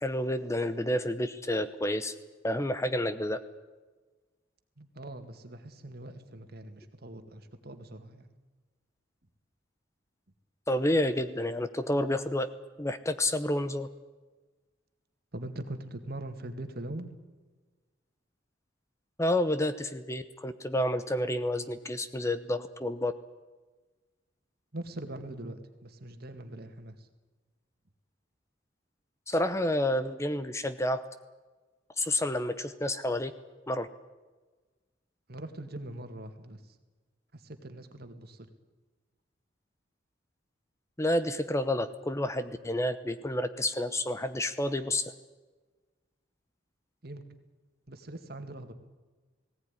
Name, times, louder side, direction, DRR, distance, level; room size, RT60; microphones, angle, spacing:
voice 1, 0.0-2.1 2.4-3.4 10.7-12.5 12.8-13.9 19.2-23.1 29.3-31.0 32.0-33.3 33.7-33.9 41.0-45.0, left 1 dB, 15° left, 11 dB, 0.8 m, -29 dB
voice 2, 4.8-8.3 15.3-17.1 24.7-27.1 35.3-36.8 37.3-38.5 47.0-47.2 47.9-48.7, right 1 dB, 50° right, 8 dB, 2.1 m, -42 dB
19.0 x 17.0 x 10.0 m, 1.3 s
head